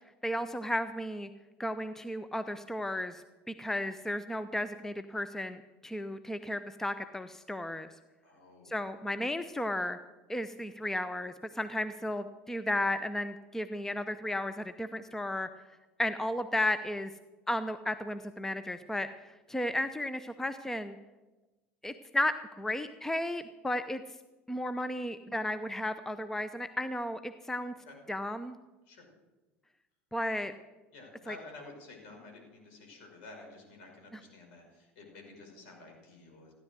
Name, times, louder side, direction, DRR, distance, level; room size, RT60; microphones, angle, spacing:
voice 1, 0.2-1.3 1.6-7.9 8.7-10.0 10.3-15.5 16.0-17.1 17.5-21.0 21.8-24.0 24.5-27.7 28.1-28.6 30.1-30.5 31.3-31.4, left 1 dB, 5° left, 11 dB, 0.7 m, -34 dB
voice 2, 8.2-8.8 27.9-28.0 28.9-29.1 30.9-36.5, left 3 dB, 60° left, 2 dB, 5.4 m, -51 dB
16.0 x 11.0 x 6.3 m, 1.1 s
figure-of-eight pair, 70°, 7 cm